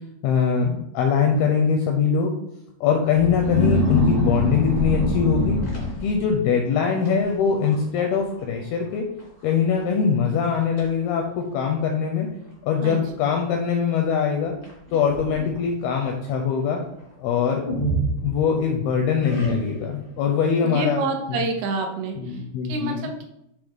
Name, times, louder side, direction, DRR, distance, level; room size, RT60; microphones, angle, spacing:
voice 1, 0.2-2.3 2.8-5.6 6.0-9.1 9.4-12.3 12.7-14.5 14.9-16.8 17.2-17.6 18.2-21.0 21.3-21.4 22.2-23.0, left 6 dB, 85° left, 2 dB, 2.2 m, -22 dB
sound 1, 3.1-6.4 7.0-7.3 7.6-8.0 8.3-8.4 9.2-9.3 9.8-9.9 10.4-10.9 11.7-11.8 14.6-15.6 17.6-18.7 19.2-19.9, left 1 dB, 55° left, 0.6 m, -25 dB
voice 2, 20.6-22.4 22.7-23.2, right 3 dB, 85° right, 3 dB, 3.1 m, -28 dB
9.6 x 3.4 x 3.5 m, 0.80 s
omnidirectional pair, 5.0 m